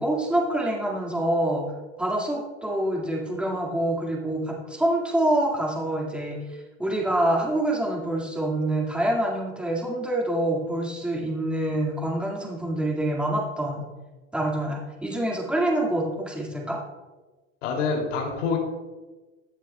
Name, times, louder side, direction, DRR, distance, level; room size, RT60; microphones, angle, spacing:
voice 1, 0.0-1.6 2.0-13.8 14.3-16.8, right 1 dB, 5° right, -3 dB, 1.9 m, -26 dB
voice 2, 17.6-18.6, left 5 dB, 80° left, 0 dB, 2.7 m, -26 dB
14.5 x 8.7 x 2.2 m, 1.2 s
supercardioid pair, 115°, 37 cm